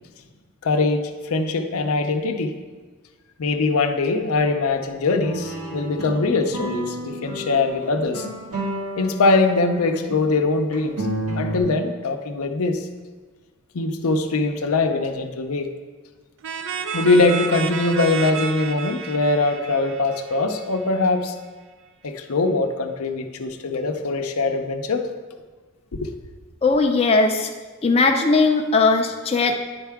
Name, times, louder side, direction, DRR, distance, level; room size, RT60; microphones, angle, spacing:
voice 1, 0.6-2.6 3.4-8.3 9.0-11.1 11.3-12.9 13.7-15.7 16.9-21.3 22.0-25.1 25.9-26.1, left 3 dB, 90° left, 5 dB, 0.6 m, -22 dB
sound 1, 5.2-10.2 10.7-11.6, right 1 dB, 85° right, 1.8 m, -31 dB
sound 2, 16.4-21.0, right 6 dB, 60° right, 0.4 m, -31 dB
voice 2, 26.6-27.5 27.8-29.6, left 3 dB, 30° left, 3 dB, 0.5 m, -18 dB
9.9 x 4.6 x 3.5 m, 1.4 s
head